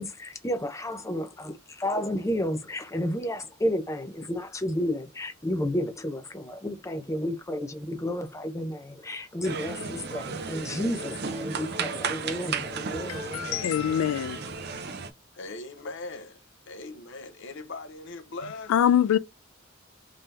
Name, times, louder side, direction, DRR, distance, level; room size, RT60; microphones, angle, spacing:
voice 1, 0.0-13.7, equal, 15° left, 0.6 m, -31 dB
sound 1, 9.4-15.1, right 5 dB, 55° right, 0.6 m, -34 dB
voice 2, 13.1-14.4 18.7-19.2, left 9 dB, 85° left, 0.3 m, -24 dB
voice 3, 15.3-18.7, left 2 dB, 65° left, 0.8 m, -40 dB
3.7 x 2.8 x 3.2 m
head